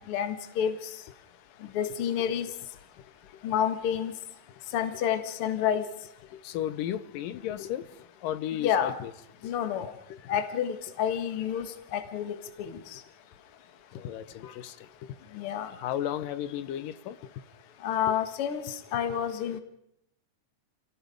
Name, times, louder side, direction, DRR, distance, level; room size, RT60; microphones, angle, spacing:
voice 1, 0.1-0.7 1.7-2.5 3.4-4.1 4.7-5.8 8.6-8.9 9.4-9.9 10.3-12.7 15.3-15.7 17.8-19.6, left 9 dB, 50° left, 2.1 m, -29 dB
voice 2, 6.3-9.1 9.4-9.5 10.1-10.4 11.6-11.7 13.9-15.2 15.5-17.2 18.1-18.2, left 11 dB, 80° left, 2.5 m, -35 dB
27.5 x 18.0 x 5.2 m
omnidirectional pair, 4.0 m